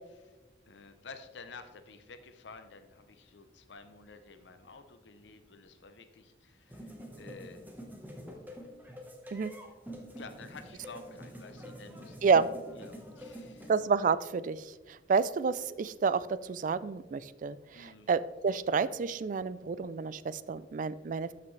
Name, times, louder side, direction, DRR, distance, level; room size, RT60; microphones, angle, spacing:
voice 1, 0.7-7.6 10.1-12.2 12.8-13.7 17.7-18.1, left 4 dB, 85° left, 8 dB, 0.7 m, -51 dB
sound 1, 6.7-13.8, equal, 10° right, 1.1 m, -46 dB
voice 2, 13.7-14.6 14.9-21.3, right 5 dB, 45° right, 16 dB, 0.3 m, -29 dB
13.0 x 5.8 x 3.2 m, 1.2 s
head